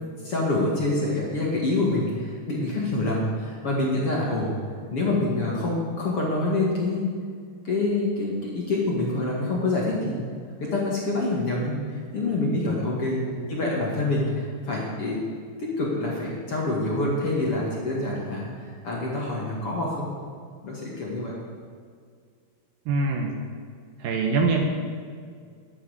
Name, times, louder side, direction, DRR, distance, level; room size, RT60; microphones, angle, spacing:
voice 1, 0.2-4.6 4.9-7.2 7.6-10.2 10.6-15.2 15.6-20.1 20.6-21.3, left 2 dB, 45° left, -4 dB, 2.3 m, -26 dB
voice 2, 13.2-13.5 22.9-23.3 24.0-24.8, right 3 dB, 70° right, 2 dB, 2.6 m, -25 dB
10.5 x 10.0 x 8.0 m, 2.1 s
omnidirectional pair, 4.7 m